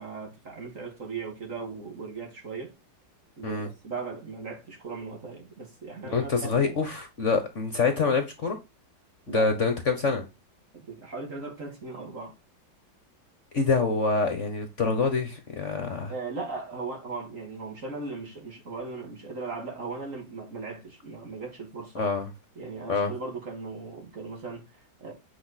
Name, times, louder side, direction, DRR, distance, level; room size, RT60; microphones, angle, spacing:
voice 1, 0.0-2.7 3.4-6.8 9.3-9.5 10.7-12.4 16.1-22.1 22.6-25.1, right 4 dB, 40° right, 2.7 m, -38 dB
voice 2, 6.1-8.6 9.3-10.2 13.5-16.1 21.9-22.3 22.9-23.1, left 4 dB, 45° left, 1.3 m, -26 dB
8.4 x 5.1 x 4.1 m
omnidirectional pair, 2.0 m